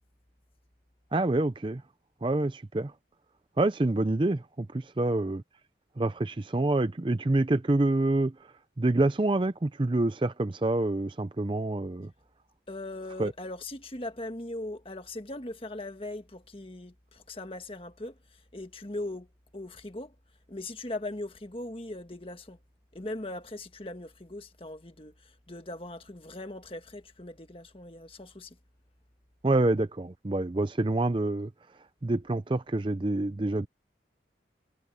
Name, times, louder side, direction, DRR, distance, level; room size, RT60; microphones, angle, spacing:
voice 1, 1.1-1.8 2.2-2.9 3.6-5.4 6.0-8.3 8.8-12.1 13.2-13.3 29.4-31.5 32.0-33.7, right 2 dB, 30° right, 0.5 m, -27 dB
voice 2, 12.7-19.3 19.5-20.1 20.5-22.6 22.9-28.6, left 2 dB, 30° left, 1.6 m, -40 dB
head